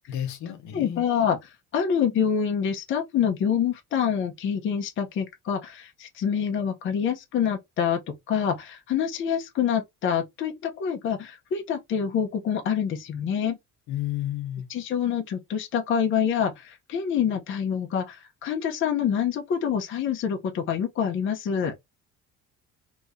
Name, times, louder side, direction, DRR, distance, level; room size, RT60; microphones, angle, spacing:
voice 1, 0.1-1.0 13.9-14.7, left 11 dB, 75° left, 1.0 m, -31 dB
voice 2, 0.7-8.0 8.3-13.6 14.7-21.7, left 8 dB, 40° left, 0.8 m, -26 dB
2.9 x 2.6 x 3.5 m
cardioid pair, 165°, 30 cm